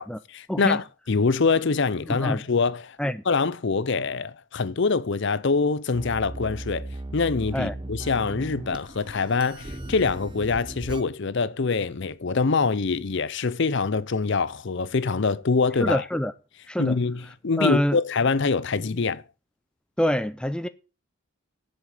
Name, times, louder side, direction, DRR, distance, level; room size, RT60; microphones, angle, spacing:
voice 1, 0.0-3.0 3.3-16.0 16.8-19.2, left 4 dB, 55° left, 0.6 m, -25 dB
voice 2, 2.1-2.4 3.0-3.2 7.5-7.7 15.8-16.3 16.7-17.0 17.6-18.0 20.0-20.7, equal, 5° left, 0.4 m, -25 dB
sound 1, 5.9-11.0, right 1 dB, 20° right, 0.8 m, -37 dB
7.5 x 7.3 x 8.3 m
head